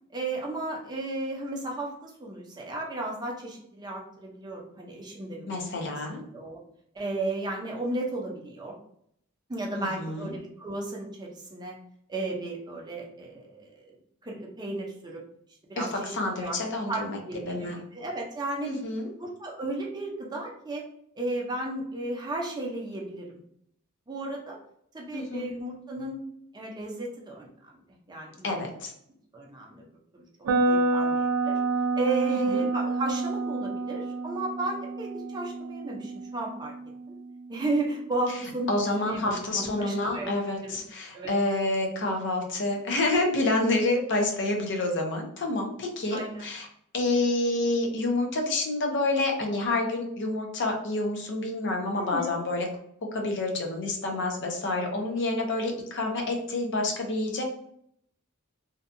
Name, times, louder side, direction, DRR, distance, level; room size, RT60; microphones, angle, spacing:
voice 1, 0.1-6.6 6.9-8.8 9.5-11.8 12.1-14.0 14.2-15.2 15.7-16.6 16.9-18.7 19.2-20.8 21.2-23.3 24.1-24.6 24.9-26.2 26.5-27.5 28.1-28.7 29.3-29.8 30.1-30.3 30.7-31.6 32.0-36.7 37.5-40.3 40.6-40.8 41.1-41.3 46.1-46.4 51.9-52.3, right 2 dB, 20° right, -1 dB, 0.5 m, -34 dB
voice 2, 5.5-6.2 9.7-10.3 15.8-17.2 17.5-17.8 18.6-19.1 25.1-25.5 28.4-28.9 32.3-32.7 38.7-46.7 46.9-52.7 53.1-57.5, left 2 dB, 55° left, 2 dB, 0.6 m, -28 dB
sound 1, 30.4-38.4, right 3 dB, 90° right, 0.4 m, -29 dB
2.6 x 2.2 x 2.5 m, 0.70 s
head